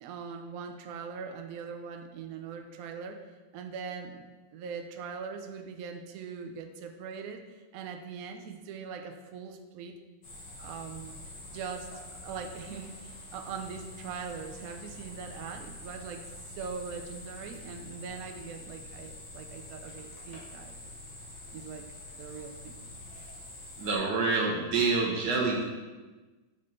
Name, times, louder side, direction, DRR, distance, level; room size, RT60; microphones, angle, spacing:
voice 1, 0.0-3.2 3.5-10.0 10.6-11.1 11.5-11.9 12.2-20.7 21.5-21.9 22.2-22.8, right 6 dB, 85° right, 5 dB, 0.7 m, -41 dB
sound 1, 10.2-24.0, left 1 dB, 65° left, 2.2 m, -46 dB
voice 2, 23.8-25.7, right 3 dB, 55° right, -1 dB, 1.5 m, -27 dB
5.2 x 5.2 x 4.3 m, 1.2 s
omnidirectional pair, 2.1 m